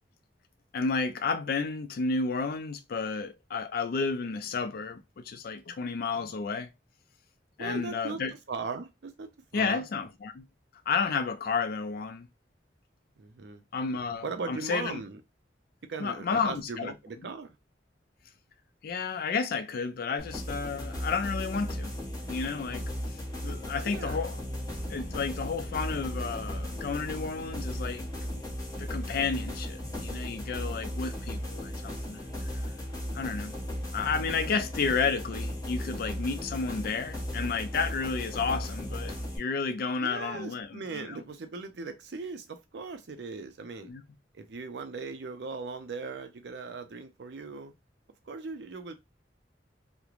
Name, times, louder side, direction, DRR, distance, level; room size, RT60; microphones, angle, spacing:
voice 1, 0.7-6.7 7.6-8.3 9.5-10.5 10.9-12.3 13.7-15.0 16.0-16.9 18.8-21.9 22.3-24.4 24.9-28.4 28.8-32.2 33.1-33.6 33.9-41.2 43.8-44.0, left 5 dB, 55° left, 0.4 m, -32 dB
voice 2, 7.6-8.2 8.5-9.8 13.2-13.6 14.2-15.2 15.9-17.6 23.8-24.2 40.0-43.9 44.3-47.7 48.3-49.0, right 4 dB, 70° right, 0.5 m, -39 dB
sound 1, 20.2-39.4, equal, 20° left, 0.9 m, -36 dB
sound 2, 24.7-37.2 37.5-37.6, equal, 15° right, 0.4 m, -52 dB
3.1 x 2.1 x 2.4 m
head